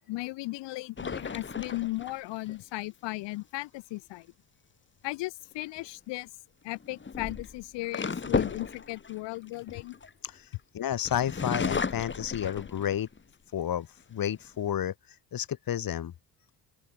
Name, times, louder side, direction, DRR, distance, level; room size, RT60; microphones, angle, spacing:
voice 1, 0.1-4.3 5.0-6.3 6.6-10.0 12.4-12.5, left 20 dB, 90° left, 6.2 m, -36 dB
sound 1, 1.0-2.6 5.5-5.8 6.8-10.5 11.0-13.2 13.7-13.8 14.2-14.7, left 5 dB, 25° left, 4.0 m, -34 dB
voice 2, 10.7-13.1 13.5-13.9 14.1-14.9 15.3-16.1, left 10 dB, 55° left, 3.8 m, -31 dB
open air
cardioid pair, 100°, 41 cm